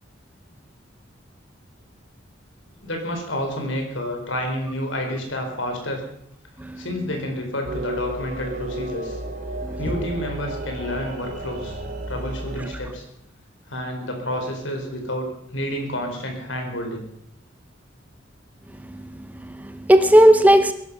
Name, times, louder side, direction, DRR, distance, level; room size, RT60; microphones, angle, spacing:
voice 1, 2.8-6.1 6.8-9.2 9.8-11.8 12.1-13.0 13.7-17.1, left 1 dB, 85° left, 4.5 m, -29 dB
sound 1, 7.6-12.7, right 1 dB, 45° right, 2.8 m, -32 dB
voice 2, 19.4-20.7, right 1 dB, 10° right, 0.8 m, -16 dB
21.5 x 11.5 x 5.5 m
head